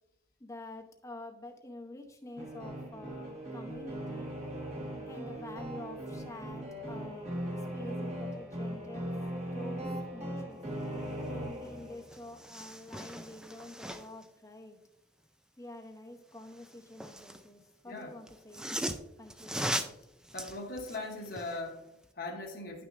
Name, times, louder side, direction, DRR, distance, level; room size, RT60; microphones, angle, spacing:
voice 1, 0.4-4.3 5.1-9.1 9.5-10.6 11.3-14.8 15.6-18.8 19.2-20.0, left 1 dB, 15° left, 3 dB, 0.7 m, -48 dB
sound 1, 2.4-12.2, right 1 dB, 35° right, 1.4 m, -39 dB
sound 2, 11.6-11.7 12.0-14.3 16.4-17.5 18.3-21.6 22.0-22.1, right 1 dB, 5° right, 0.3 m, -39 dB
voice 2, 17.8-18.2 20.3-22.8, left 2 dB, 45° left, 0 dB, 1.0 m, -40 dB
10.5 x 6.1 x 2.5 m, 0.87 s
head